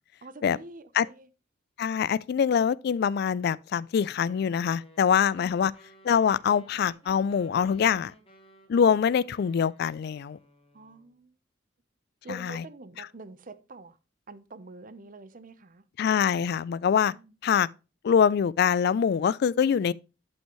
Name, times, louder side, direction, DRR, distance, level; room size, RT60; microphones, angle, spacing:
voice 1, 0.2-1.3 5.4-5.7 10.7-11.4 12.2-14.0 14.3-15.8 17.1-17.3, right 3 dB, 45° right, 0.7 m, -46 dB
voice 2, 1.8-5.7 6.0-8.1 8.7-10.4 12.3-12.5 16.0-17.1 17.4-17.7 18.0-19.9, left 7 dB, 55° left, 0.3 m, -24 dB
sound 1, 4.0-11.1, left 1 dB, 30° left, 1.5 m, -57 dB
11.5 x 5.4 x 3.1 m
head